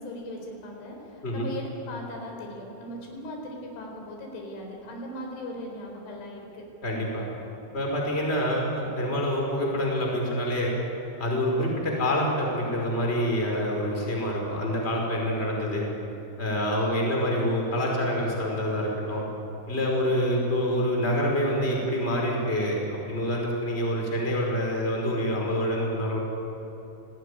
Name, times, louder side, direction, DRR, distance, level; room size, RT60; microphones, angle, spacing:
voice 1, 0.0-6.7 15.5-15.6 16.8-17.0, left 1 dB, 75° left, 1 dB, 6.5 m, -39 dB
voice 2, 6.8-7.2 7.7-10.7 11.2-15.8 16.4-19.2 19.7-26.2, equal, 15° left, -1 dB, 4.8 m, -26 dB
28.0 x 19.0 x 10.0 m, 2.9 s
omnidirectional pair, 5.4 m